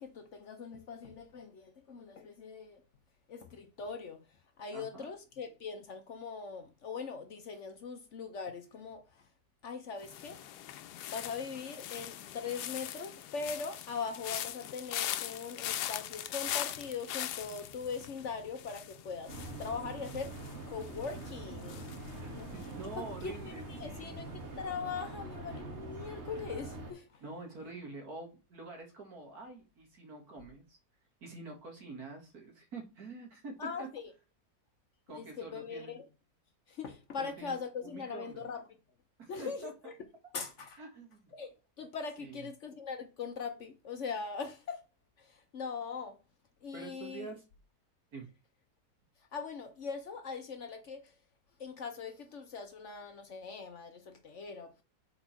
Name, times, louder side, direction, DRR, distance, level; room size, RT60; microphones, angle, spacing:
voice 1, 0.0-2.8 3.3-4.2 4.6-9.3 9.6-10.4 11.1-20.4 20.7-21.9 22.3-22.5 23.0-27.2 33.6-34.1 35.1-36.1 36.7-38.6 39.3-39.9 40.3-40.8 41.3-44.8 45.2-46.2 46.6-47.3 49.3-51.1 51.6-54.8, left 5 dB, 55° left, 1.0 m, -41 dB
voice 2, 4.7-5.1 22.2-24.2 27.2-30.8 31.2-33.9 35.1-35.9 37.2-37.5 37.8-38.4 39.2-39.7 40.8-41.3 42.2-42.5 46.7-47.4 48.1-48.3, right 3 dB, 70° right, 2.2 m, -46 dB
sound 1, 10.0-23.1 23.3-23.8, left 12 dB, 90° left, 1.2 m, -41 dB
sound 2, 19.3-26.9, right 2 dB, 45° right, 1.7 m, -44 dB
4.4 x 4.3 x 5.7 m
omnidirectional pair, 1.7 m